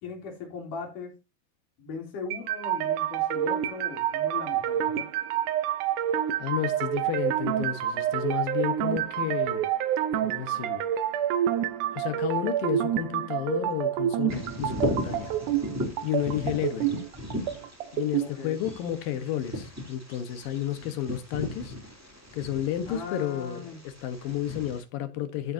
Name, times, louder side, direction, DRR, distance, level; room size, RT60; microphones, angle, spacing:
voice 1, 0.0-1.1 1.8-5.1 18.2-18.6 22.9-23.8, left 5 dB, 70° left, 4.8 m, -39 dB
sound 1, 2.3-18.3, right 11 dB, 75° right, 2.2 m, -28 dB
voice 2, 6.4-9.6 10.2-10.8 11.9-15.3 16.0-16.9 17.9-21.7 22.3-23.7 24.0-25.5, left 11 dB, 85° left, 3.1 m, -31 dB
Bird vocalization bird call bird song, 14.3-24.8, equal, 5° right, 3.2 m, -36 dB
14.5 x 7.9 x 2.8 m
omnidirectional pair, 3.9 m